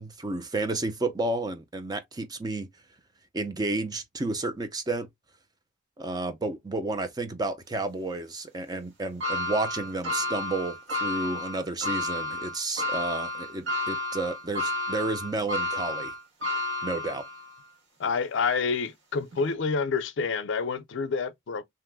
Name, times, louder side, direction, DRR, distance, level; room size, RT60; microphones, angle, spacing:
voice 1, 0.0-2.7 3.3-5.1 6.0-16.1 16.8-17.2, right 2 dB, 20° right, 0.5 m, -31 dB
sound 1, 9.2-17.6 18.1-18.2 19.3-19.4, left 2 dB, 80° right, 1.3 m, -31 dB
voice 2, 18.0-21.6, left 5 dB, 75° left, 0.5 m, -28 dB
2.9 x 2.1 x 3.3 m
head